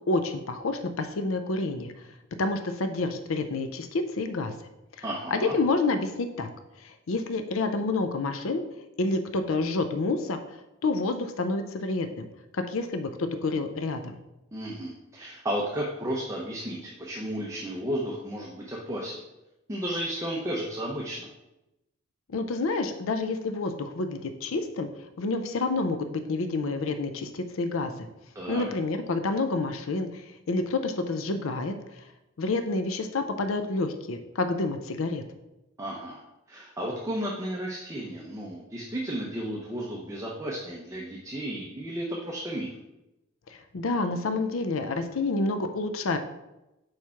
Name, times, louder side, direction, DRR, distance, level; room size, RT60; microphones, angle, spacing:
voice 1, 0.0-1.9 2.4-4.5 5.3-6.5 6.8-8.6 9.0-10.4 10.8-12.3 12.5-14.2 22.3-24.9 25.2-28.1 28.5-31.8 32.4-35.2 43.5-46.2, left 3 dB, 85° left, 8 dB, 0.5 m, -28 dB
voice 2, 5.0-5.5 14.5-19.2 19.7-21.3 28.3-28.6 35.8-42.7, equal, 15° right, -3 dB, 0.7 m, -33 dB
4.8 x 4.5 x 5.7 m, 0.95 s
head